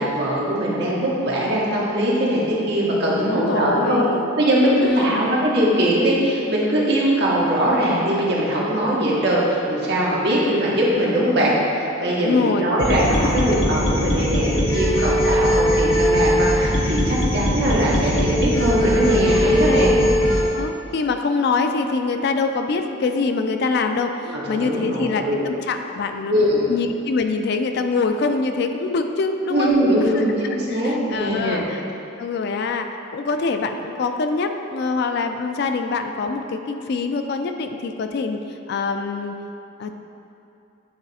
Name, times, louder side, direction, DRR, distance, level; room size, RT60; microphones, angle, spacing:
voice 1, 0.0-4.0 4.4-11.5 12.0-19.9 24.2-25.4 26.3-26.7 29.5-31.7, right 1 dB, 55° right, -5 dB, 1.2 m, -21 dB
voice 2, 3.0-4.3 4.8-5.3 12.2-12.6 13.4-13.6 19.6-19.9 20.5-26.3 26.7-29.7 30.0-30.2 30.7-31.8 32.2-32.9 33.1-38.4 38.7-39.4 39.8-39.9, left 4 dB, 55° left, 6 dB, 0.3 m, -24 dB
sound 1, 12.8-20.5, equal, 80° left, 1.1 m, -20 dB
8.7 x 3.2 x 4.1 m, 2.7 s
head